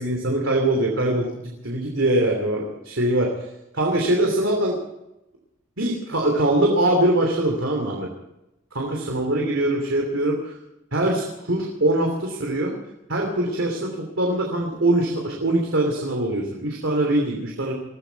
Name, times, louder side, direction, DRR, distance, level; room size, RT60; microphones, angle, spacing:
voice 1, 0.0-3.5 3.7-4.8 5.8-8.1 8.7-10.6 10.9-12.7 13.1-17.7, right 1 dB, 80° right, 1 dB, 3.1 m, -23 dB
21.5 x 14.5 x 4.6 m, 0.93 s
head